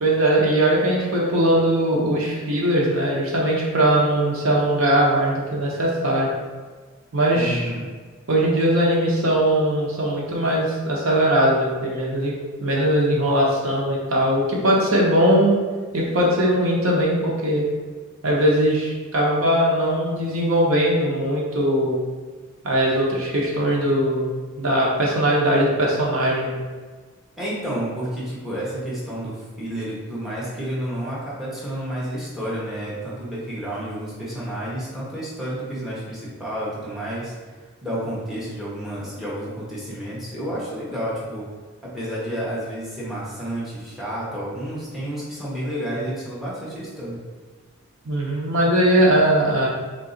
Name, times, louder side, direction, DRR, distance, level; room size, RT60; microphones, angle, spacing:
voice 1, 0.0-6.3 7.1-7.7 8.3-12.3 12.6-15.5 15.9-17.6 18.2-22.0 22.6-24.3 24.6-26.6 48.0-49.7, right 1 dB, 70° right, -3 dB, 0.9 m, -20 dB
voice 2, 7.3-7.8 27.4-37.3 37.8-41.5 41.8-47.2, equal, ahead, -7 dB, 1.1 m, -30 dB
3.8 x 2.8 x 3.8 m, 1.4 s
head